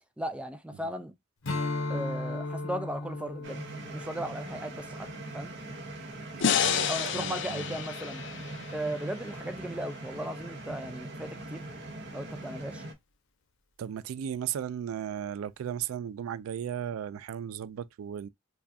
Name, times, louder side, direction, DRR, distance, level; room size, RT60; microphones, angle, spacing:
voice 1, 0.2-1.1 1.9-3.6 3.9-5.1 5.3-5.5 6.9-8.2 8.7-11.6 12.1-12.8, right 1 dB, 5° right, 0.4 m, -36 dB
Strum, 1.4-6.1, left 2 dB, 85° left, 1.0 m, -37 dB
sound 1, 3.4-12.9, right 2 dB, 60° right, 0.8 m, -42 dB
voice 2, 6.3-7.8 13.8-18.3, right 9 dB, 90° right, 0.3 m, -36 dB
sound 2, 6.4-9.6, left 8 dB, 60° left, 0.5 m, -30 dB
4.7 x 2.3 x 2.6 m
head